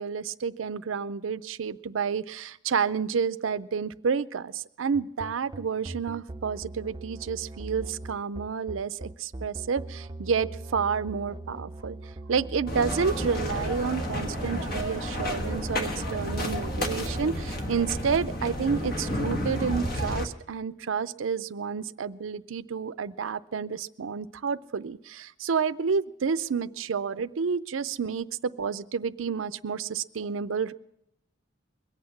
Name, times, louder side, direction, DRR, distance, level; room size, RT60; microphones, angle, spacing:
voice 1, 0.0-12.0 12.3-30.7, right 6 dB, 90° right, 14 dB, 0.5 m, -30 dB
sound 1, 4.9-13.8, right 2 dB, 20° right, 0.5 m, -40 dB
sound 2, 12.7-20.2, equal, 50° left, 1.5 m, -31 dB
22.0 x 8.5 x 6.0 m, 0.80 s
head